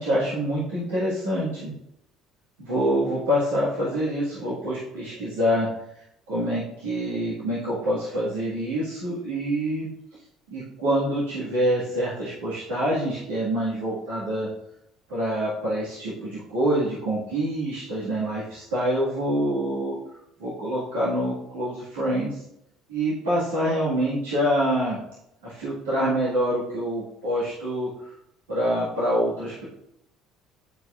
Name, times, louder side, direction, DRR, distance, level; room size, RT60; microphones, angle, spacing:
voice 1, 0.0-1.7 2.6-5.7 5.9-9.9 10.5-14.5 15.1-20.0 20.4-22.4 22.9-25.0 25.4-28.1 28.5-29.6, equal, 85° right, -10 dB, 1.9 m, -26 dB
10.5 x 4.7 x 2.5 m, 0.79 s
hypercardioid pair, 65°, 0 cm